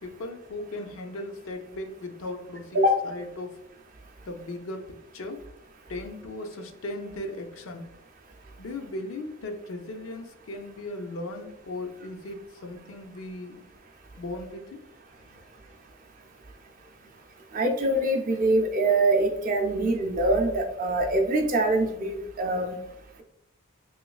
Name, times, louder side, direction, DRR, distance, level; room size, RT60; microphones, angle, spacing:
voice 1, 0.0-3.6 4.3-5.4 5.9-7.9 8.6-13.7 14.2-14.8, left 2 dB, 65° left, 5 dB, 0.4 m, -37 dB
voice 2, 17.5-22.8, right 1 dB, 40° right, 3 dB, 0.4 m, -24 dB
3.1 x 3.1 x 2.3 m, 0.86 s
head